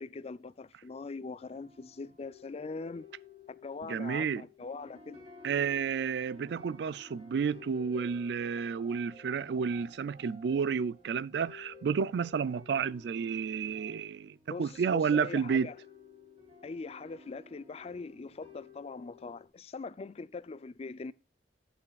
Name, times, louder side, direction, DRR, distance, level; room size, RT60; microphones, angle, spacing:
voice 1, 0.0-3.1 3.5-5.2 14.5-15.8 16.6-21.1, left 4 dB, 35° left, 0.4 m, -42 dB
sound 1, 1.4-19.5, left 3 dB, 35° right, 2.8 m, -54 dB
voice 2, 3.9-4.5 5.4-15.7, right 6 dB, 65° right, 0.3 m, -31 dB
12.0 x 8.4 x 2.3 m
head